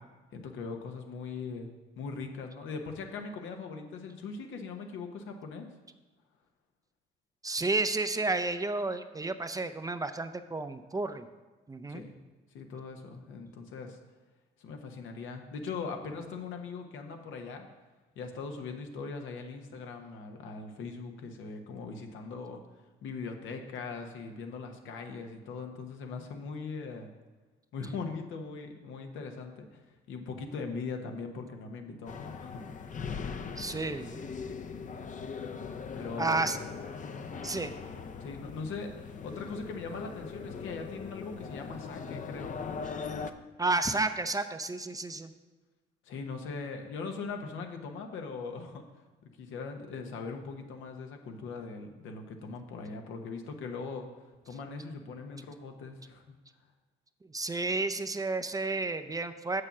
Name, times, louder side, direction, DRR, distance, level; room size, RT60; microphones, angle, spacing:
voice 1, 0.3-1.7 2.0-5.7 11.9-12.2 12.5-14.0 14.6-17.7 18.1-22.6 23.0-27.1 27.7-33.0 35.9-36.5 38.2-42.6 46.0-48.8 49.4-54.1 54.5-56.4, left 4 dB, 85° left, 4 dB, 1.1 m, -40 dB
voice 2, 7.4-11.3 11.7-12.0 33.6-34.2 36.2-36.6 37.4-37.7 43.6-45.3 57.3-59.6, right 3 dB, 20° right, 10 dB, 0.5 m, -31 dB
sound 1, 32.1-43.3, left 5 dB, 40° left, 0.6 m, -40 dB
7.1 x 6.6 x 6.0 m, 1.2 s
cardioid pair, 90°, 20 cm